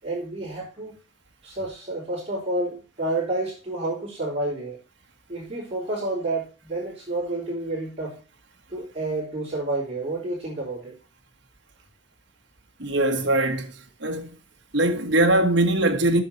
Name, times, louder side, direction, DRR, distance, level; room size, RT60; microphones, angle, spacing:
voice 1, 0.0-0.9 1.4-4.8 5.3-8.2 8.7-11.0, right 2 dB, 30° right, 4.1 m, -29 dB
voice 2, 12.8-13.7 14.0-14.3 14.7-16.2, right 1 dB, 60° right, 1.4 m, -21 dB
8.3 x 7.0 x 4.4 m
head